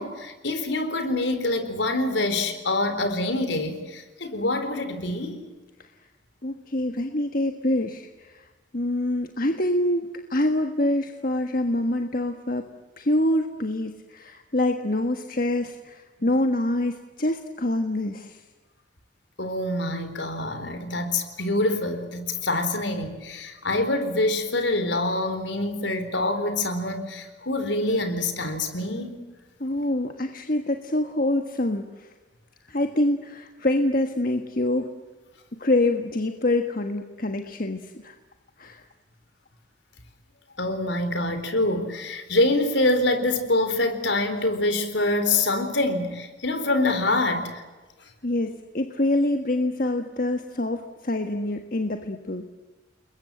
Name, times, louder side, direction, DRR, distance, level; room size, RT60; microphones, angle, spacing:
voice 1, 0.0-5.4 16.2-16.3 19.4-29.2 40.6-47.6, left 2 dB, 70° left, 8 dB, 4.1 m, -25 dB
voice 2, 6.4-8.5 8.7-12.6 13.0-18.4 29.6-32.1 32.7-34.9 35.6-38.1 38.6-38.8 48.2-52.5, left 1 dB, 45° left, 5 dB, 1.5 m, -26 dB
30.0 x 22.0 x 7.7 m, 1.2 s
head